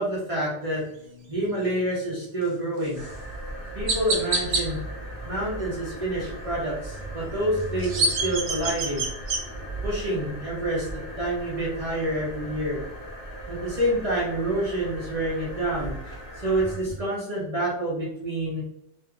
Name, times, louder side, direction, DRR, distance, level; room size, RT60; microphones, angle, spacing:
voice 1, 0.0-3.0 3.7-4.8 5.2-9.0 9.8-12.8 13.5-15.9 16.4-18.6, right 1 dB, 30° right, -7 dB, 1.0 m, -28 dB
Water running through apartment building pipes and plumbing, 2.9-17.0, right 1 dB, 30° left, 1.3 m, -37 dB
Chirp tweet, 3.0-3.1 3.9-4.6 7.6-9.4, right 2 dB, 75° right, 1.0 m, -25 dB
3.1 x 3.0 x 2.4 m, 0.78 s
omnidirectional pair, 1.2 m